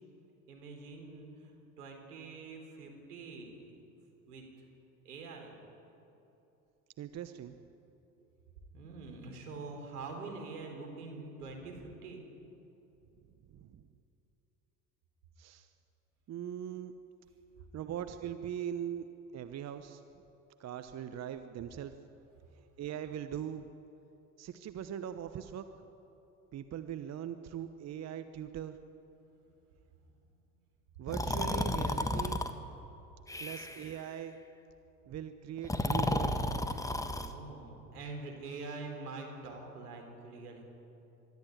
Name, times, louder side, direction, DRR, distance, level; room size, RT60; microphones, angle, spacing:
voice 1, 0.5-3.8 4.3-4.7 5.0-5.6 8.7-12.3 29.3-29.5 37.1-40.6, right 3 dB, 80° right, 2 dB, 4.2 m, -45 dB
voice 2, 7.0-7.6 13.5-13.9 15.4-15.7 16.3-16.9 17.7-19.1 19.3-20.0 20.6-21.9 22.8-23.7 24.4-25.7 26.5-28.8 31.0-32.6 33.4-34.4 35.1-36.4, right 9 dB, 35° right, 10 dB, 1.0 m, -41 dB
Breathing, 31.1-32.5 33.3-33.9 35.6-37.3, left 1 dB, 5° left, 1.3 m, -32 dB
23.0 x 13.5 x 9.3 m, 2.9 s
hypercardioid pair, 70°, 45 cm